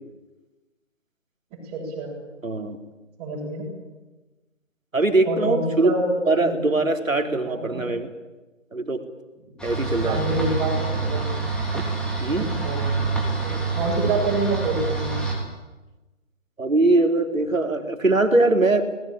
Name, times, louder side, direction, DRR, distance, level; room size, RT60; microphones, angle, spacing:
voice 1, 1.6-2.2 3.2-3.7 5.2-6.5 7.5-7.8 10.0-11.4 12.4-12.8 13.4-15.2, right 2 dB, 15° right, -4 dB, 7.3 m, -27 dB
voice 2, 2.4-2.8 4.9-5.9 6.3-8.1 8.7-9.0 9.6-10.3 11.7-11.8 12.2-12.5 16.6-18.9, right 2 dB, 85° right, 5 dB, 3.7 m, -21 dB
sound 1, 9.6-15.3, right 4 dB, ahead, 3.4 m, -26 dB
26.0 x 20.0 x 9.0 m, 1.1 s
figure-of-eight pair, 150°, 39 cm